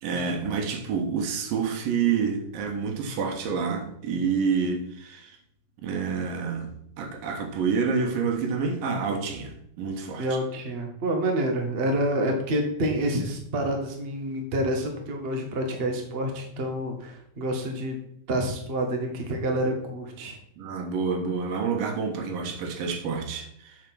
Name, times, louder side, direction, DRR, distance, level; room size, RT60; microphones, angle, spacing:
voice 1, 0.0-5.4 5.8-10.4 20.6-23.8, right 5 dB, 90° right, 4 dB, 3.1 m, -28 dB
voice 2, 10.2-18.0 18.3-20.4, right 1 dB, 45° right, 2 dB, 0.7 m, -28 dB
8.3 x 5.1 x 6.2 m, 0.72 s
omnidirectional pair, 3.9 m